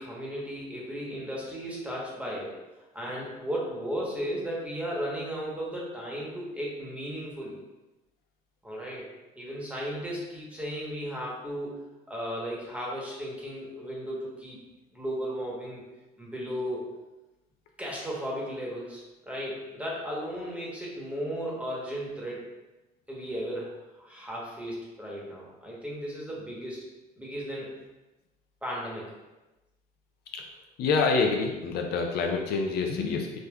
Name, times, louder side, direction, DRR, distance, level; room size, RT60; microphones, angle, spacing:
voice 1, 0.0-2.6 2.9-7.6 8.6-9.0 9.3-11.8 12.1-14.6 14.9-15.8 16.2-16.8 17.8-22.5 23.1-26.8 27.2-27.7 28.6-29.1, equal, 10° right, -4 dB, 1.0 m, -35 dB
voice 2, 30.8-33.4, left 4 dB, 70° left, 3 dB, 0.4 m, -27 dB
5.1 x 2.1 x 2.2 m, 1.1 s
cardioid pair, 110°, 17 cm